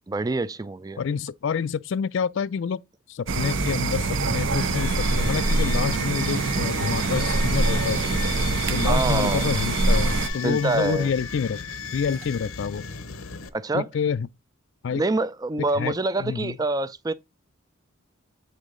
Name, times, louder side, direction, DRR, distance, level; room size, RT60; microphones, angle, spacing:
voice 1, 0.1-1.0 8.8-9.5 10.4-11.1 13.5-13.9 14.9-17.1, right 3 dB, 15° right, 0.3 m, -26 dB
voice 2, 1.0-2.8 3.1-8.2 8.7-11.6 11.9-12.8 13.7-14.3 14.8-15.0 15.8-16.6, left 6 dB, 60° left, 0.4 m, -28 dB
sound 1, 3.3-10.3, right 3 dB, 65° right, 0.7 m, -24 dB
sound 2, 4.5-13.5, left 7 dB, 85° left, 0.8 m, -36 dB
sound 3, 8.5-9.0 9.3-9.5 10.0-10.5 11.5-11.8 12.0-12.6 13.3-13.4, right 7 dB, 85° right, 1.1 m, -44 dB
8.2 x 3.8 x 3.7 m
head